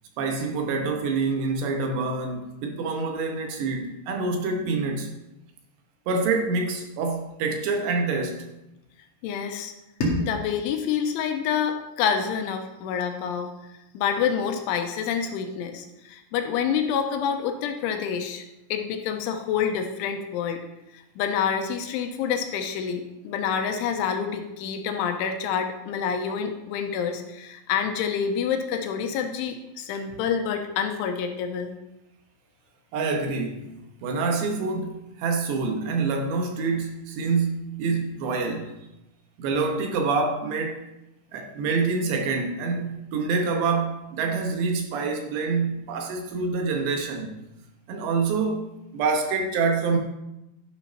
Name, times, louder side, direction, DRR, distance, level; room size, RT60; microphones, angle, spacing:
voice 1, 0.2-5.1 6.1-8.5 32.9-33.7 34.0-38.8 39.4-40.8 41.3-47.4 47.9-50.0, right 4 dB, 70° right, 2 dB, 3.0 m, -26 dB
voice 2, 9.2-9.7 10.2-13.5 13.9-18.4 18.7-20.6 20.9-31.7, left 7 dB, 85° left, 5 dB, 3.2 m, -27 dB
sound 1, 10.0-12.9, left 1 dB, 45° left, 2.1 m, -33 dB
12.0 x 5.8 x 5.7 m, 0.91 s
omnidirectional pair, 5.6 m